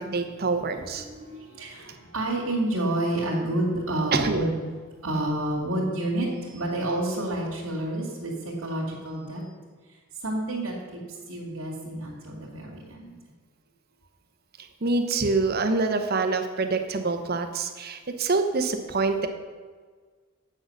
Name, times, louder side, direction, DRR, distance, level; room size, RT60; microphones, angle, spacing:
voice 1, 0.0-1.0 4.1-4.4 14.6-19.3, right 3 dB, 50° right, 7 dB, 0.9 m, -26 dB
voice 2, 1.0-4.6 5.0-9.5 10.2-13.1, right 1 dB, 90° right, -4 dB, 2.3 m, -29 dB
8.6 x 6.5 x 6.5 m, 1.5 s
head